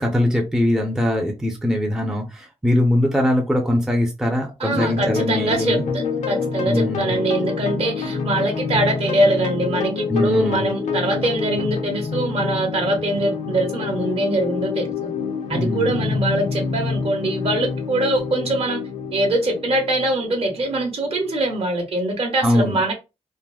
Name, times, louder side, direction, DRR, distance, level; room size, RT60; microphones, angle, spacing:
voice 1, 0.0-5.8 6.6-7.2 10.1-10.7 15.5-16.1 22.4-22.8, left 1 dB, 5° right, 0.4 m, -21 dB
voice 2, 4.6-15.1 15.5-18.8 19.1-22.9, right 2 dB, 55° right, 0.9 m, -23 dB
sound 1, 4.7-21.6, left 5 dB, 85° left, 0.6 m, -27 dB
3.4 x 2.0 x 2.3 m
wide cardioid pair, 155°, 12 cm